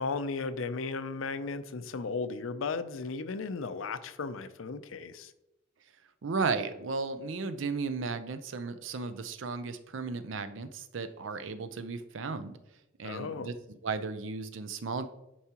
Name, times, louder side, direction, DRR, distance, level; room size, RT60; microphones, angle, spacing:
voice 1, 0.0-5.3 13.0-13.5, left 4 dB, 75° left, 12 dB, 0.5 m, -35 dB
voice 2, 6.2-12.6 13.0-15.1, right 4 dB, 70° right, 11 dB, 0.5 m, -35 dB
10.0 x 4.6 x 2.9 m, 0.95 s
head